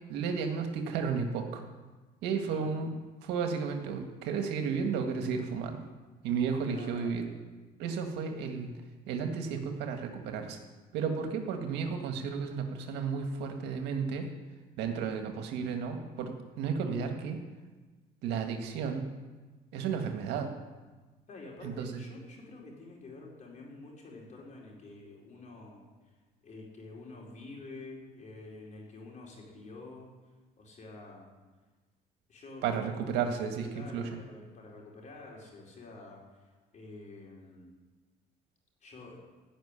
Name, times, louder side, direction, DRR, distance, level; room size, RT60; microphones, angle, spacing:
voice 1, 0.1-1.6 2.2-2.9 3.2-5.8 6.2-7.3 7.8-8.7 9.1-10.6 10.9-14.3 14.8-17.4 18.2-19.1 19.7-20.5 21.6-22.0 32.6-34.2, right 6 dB, 90° right, 5 dB, 1.9 m, -33 dB
voice 2, 6.7-7.3 21.3-26.1 26.4-31.3 32.3-32.8 33.7-37.7 38.8-39.2, left 2 dB, 45° left, -2 dB, 4.6 m, -48 dB
15.5 x 6.5 x 9.9 m, 1.3 s
cardioid pair, 110°, 17 cm